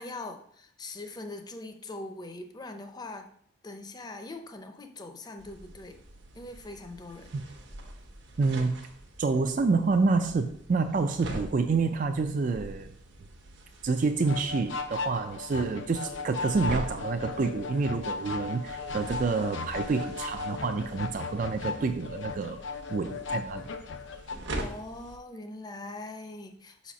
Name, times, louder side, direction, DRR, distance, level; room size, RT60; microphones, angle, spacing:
voice 1, 0.0-3.3 3.6-6.0 6.3-7.3 24.5-26.9, left 2 dB, 20° left, 6 dB, 0.6 m, -42 dB
sound 1, 5.4-25.2, right 1 dB, 65° right, 1.0 m, -44 dB
voice 2, 8.4-8.8 9.2-12.9 13.8-22.6 22.9-23.7, right 4 dB, 45° right, 6 dB, 0.4 m, -28 dB
sound 2, 14.2-24.4, left 4 dB, 75° left, 0.6 m, -37 dB
5.5 x 4.2 x 6.1 m, 0.65 s
head